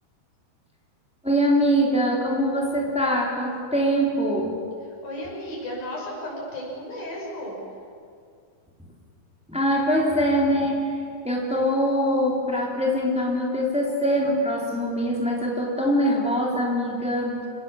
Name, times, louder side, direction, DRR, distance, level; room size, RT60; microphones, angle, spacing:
voice 1, 1.2-4.6 9.5-10.9 11.2-17.4, equal, ahead, -2 dB, 3.3 m, -23 dB
voice 2, 5.0-7.6, left 1 dB, 75° left, -3 dB, 7.9 m, -34 dB
26.0 x 19.0 x 7.3 m, 2.2 s
omnidirectional pair, 4.2 m